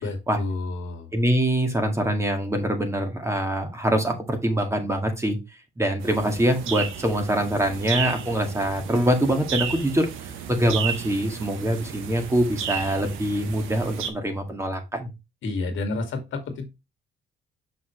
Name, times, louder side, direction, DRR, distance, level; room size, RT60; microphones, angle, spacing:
voice 1, 0.0-1.2 15.4-16.7, left 3 dB, 75° left, 6 dB, 2.0 m, -30 dB
voice 2, 1.1-5.4 5.8-10.1 10.5-15.1, right 1 dB, 15° right, 5 dB, 1.8 m, -24 dB
sound 1, 6.0-14.1, right 8 dB, 90° right, 1.1 m, -33 dB
6.0 x 5.8 x 3.1 m, 0.23 s
cardioid pair, 90°, 20 cm